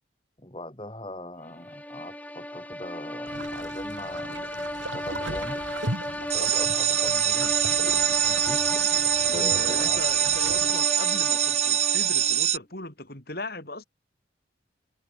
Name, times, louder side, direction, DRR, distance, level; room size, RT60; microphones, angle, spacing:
voice 1, 0.4-4.4 4.8-5.6 6.2-7.6 8.2-8.6 9.2-10.0, left 1 dB, 25° left, 4.4 m, -41 dB
sound 1, 1.5-12.5, left 1 dB, 10° left, 5.3 m, -34 dB
sound 2, 3.2-10.7, right 2 dB, 90° right, 7.8 m, -38 dB
sound 3, 6.3-12.6, right 10 dB, 35° right, 1.4 m, -24 dB
voice 2, 9.2-13.8, left 2 dB, 50° left, 6.3 m, -38 dB
head